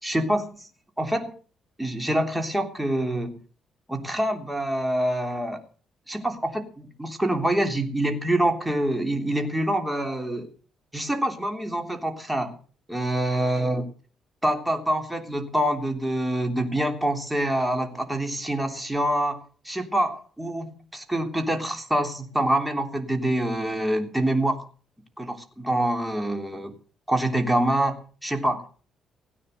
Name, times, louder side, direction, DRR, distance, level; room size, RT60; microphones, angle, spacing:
voice 1, 0.0-0.7 1.0-1.3 1.8-3.4 3.9-5.6 6.1-10.5 10.9-12.5 12.9-13.8 14.4-24.7 25.2-26.7 27.1-28.7, right 1 dB, 5° right, 5 dB, 3.3 m, -26 dB
17.0 x 9.6 x 6.7 m, 0.41 s
cardioid pair, 90°, 0 cm